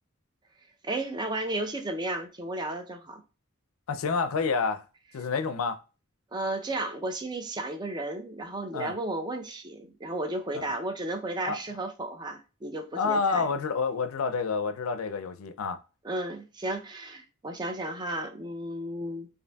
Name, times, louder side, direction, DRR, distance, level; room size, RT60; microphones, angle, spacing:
voice 1, 0.8-3.2 6.3-13.5 16.0-19.3, right 1 dB, 20° right, 0.5 m, -33 dB
voice 2, 3.9-4.8 5.1-5.8 8.7-8.9 10.5-10.7 11.4-11.6 12.9-15.8, left 4 dB, 85° left, 0.4 m, -28 dB
5.0 x 2.6 x 2.2 m
head